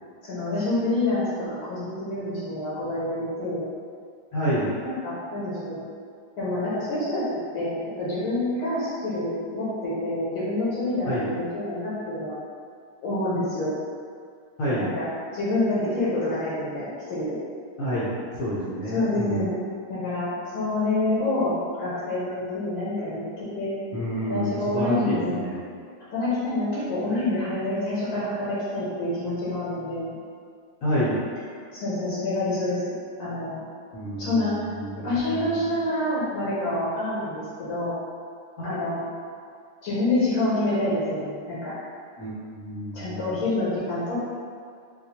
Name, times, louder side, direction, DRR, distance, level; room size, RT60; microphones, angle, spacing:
voice 1, 0.2-1.3 1.6-3.6 4.8-5.8 6.4-7.2 7.5-12.3 13.0-13.7 14.8-15.0 15.3-17.3 18.9-19.6 19.9-21.5 21.8-23.7 24.3-25.4 26.1-30.1 31.7-32.8 33.2-33.6 34.2-34.5 35.0-37.9 38.6-39.0 39.8-41.7 42.9-44.2, left 2 dB, 90° left, -10 dB, 1.7 m, -27 dB
voice 2, 4.3-4.8 11.0-11.3 14.6-14.9 17.8-18.1 18.4-19.4 23.9-25.5 30.8-31.2 33.9-35.7 38.7-38.9 42.2-43.3, equal, 60° left, -10 dB, 0.8 m, -29 dB
4.0 x 2.4 x 2.8 m, 2.2 s
omnidirectional pair, 2.3 m